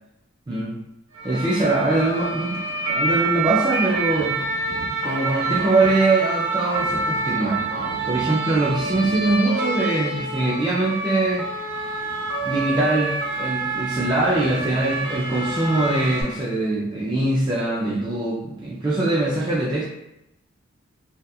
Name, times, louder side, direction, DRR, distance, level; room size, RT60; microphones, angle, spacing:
voice 1, 0.5-0.8 1.2-4.4 5.0-7.6 8.1-11.5 11.9-12.0 12.4-19.8, right 2 dB, 20° right, -6 dB, 0.3 m, -22 dB
sound 1, 1.1-16.2, right 3 dB, 85° right, 0.7 m, -27 dB
2.8 x 2.3 x 2.3 m, 0.84 s
head